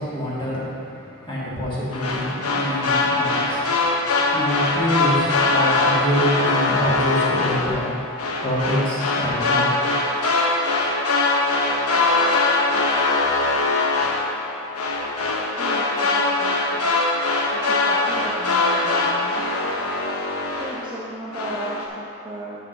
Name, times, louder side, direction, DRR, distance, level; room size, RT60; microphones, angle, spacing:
voice 1, 0.0-8.1 8.4-9.7, equal, 20° left, -7 dB, 1.7 m, -26 dB
sound 1, 1.9-21.0 21.3-21.9, left 3 dB, 80° left, 0.8 m, -22 dB
voice 2, 15.5-16.9 17.5-19.5 20.5-22.6, right 1 dB, 20° right, -5 dB, 0.7 m, -35 dB
6.5 x 5.5 x 5.7 m, 2.6 s
head